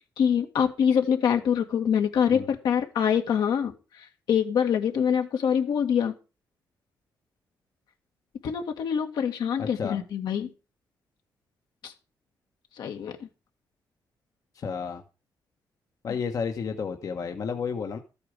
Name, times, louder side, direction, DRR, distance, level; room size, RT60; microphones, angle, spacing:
voice 1, 0.2-3.7 4.3-6.1 8.4-10.5 11.8-11.9 12.8-13.1, left 8 dB, 75° left, 4 dB, 1.9 m, -24 dB
voice 2, 9.6-10.0 14.5-15.0 16.0-18.0, left 6 dB, 50° left, 4 dB, 1.1 m, -31 dB
13.5 x 8.5 x 5.0 m, 0.32 s
cardioid pair, 125°, 7 cm